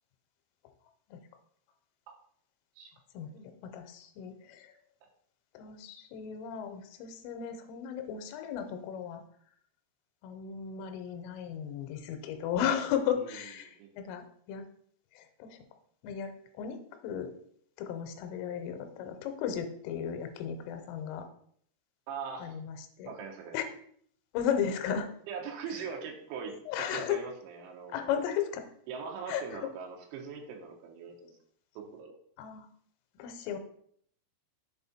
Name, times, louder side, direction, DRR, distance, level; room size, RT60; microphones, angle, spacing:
voice 1, 3.2-4.7 5.6-9.2 10.2-13.8 14.1-14.7 15.1-15.6 16.0-17.3 17.8-21.3 22.4-23.1 23.5-23.6 24.3-25.1 25.8-25.9 26.7-27.2 27.9-28.6 29.3-29.6 32.4-32.7 33.2-33.6, left 8 dB, 90° left, 7 dB, 3.3 m, -35 dB
voice 2, 22.1-22.6 23.1-23.6 25.3-28.1 28.9-31.4 31.8-32.2, right 6 dB, 80° right, 1 dB, 3.3 m, -41 dB
7.1 x 4.1 x 4.2 m, 0.63 s
omnidirectional pair, 5.9 m